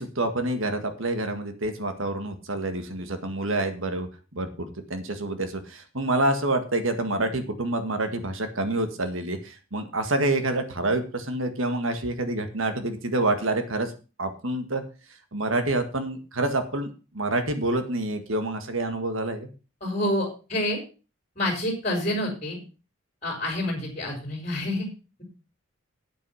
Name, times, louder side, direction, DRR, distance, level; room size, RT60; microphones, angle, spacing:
voice 1, 0.0-13.9 14.2-14.8 15.3-19.5, right 2 dB, 75° right, 8 dB, 1.8 m, -27 dB
voice 2, 19.8-20.8 21.3-22.6 23.2-24.9, left 1 dB, 35° left, 2 dB, 4.6 m, -28 dB
9.2 x 8.2 x 5.7 m, 0.33 s
head